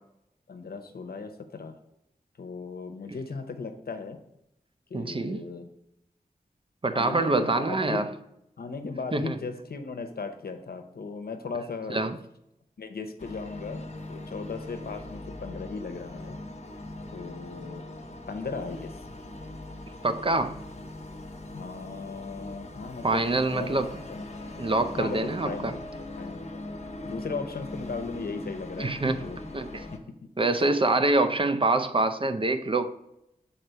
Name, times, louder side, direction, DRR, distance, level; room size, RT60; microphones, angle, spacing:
voice 1, 0.5-1.7 2.4-4.2 4.9-5.7 6.9-8.1 8.6-12.0 12.8-16.4 17.1-17.8 18.3-19.0 21.5-23.2 23.5-23.8 24.1-24.2 25.0-25.8 26.2-26.5 27.0-29.4 29.9-30.0, left 4 dB, 90° left, 0.8 m, -37 dB
voice 2, 4.9-5.4 6.8-8.1 9.1-9.4 11.9-12.2 20.0-20.6 23.0-23.9 24.6-25.8 28.8-29.3 29.5-29.8 30.4-32.9, right 2 dB, 35° right, 0.5 m, -25 dB
sound 1, 13.2-30.0, left 2 dB, 45° left, 0.8 m, -41 dB
6.7 x 4.3 x 4.4 m
wide cardioid pair, 80°, 16 cm